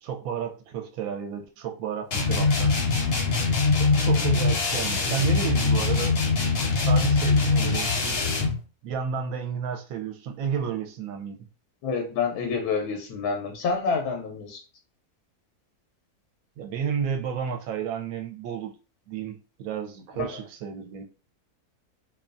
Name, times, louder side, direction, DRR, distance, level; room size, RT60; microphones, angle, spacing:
voice 1, 0.0-2.8 3.8-6.2 6.7-8.2 8.8-11.5 16.6-18.7 19.1-21.0, right 7 dB, 70° right, 1.0 m, -32 dB
sound 1, 2.1-8.6, left 4 dB, 55° left, 0.7 m, -23 dB
voice 2, 11.8-14.6 20.1-20.4, left 5 dB, 85° left, 1.1 m, -28 dB
2.6 x 2.2 x 2.4 m
omnidirectional pair, 1.6 m